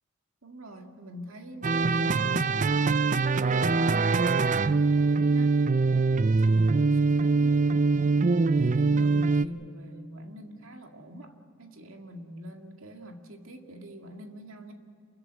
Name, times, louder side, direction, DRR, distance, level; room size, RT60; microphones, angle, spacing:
voice 1, 0.4-5.7 6.2-7.7 8.0-14.7, equal, 90° right, 4 dB, 2.1 m, -44 dB
sound 1, 1.6-9.4, right 4 dB, 40° right, 0.5 m, -23 dB
27.5 x 15.0 x 9.2 m, 2.7 s
head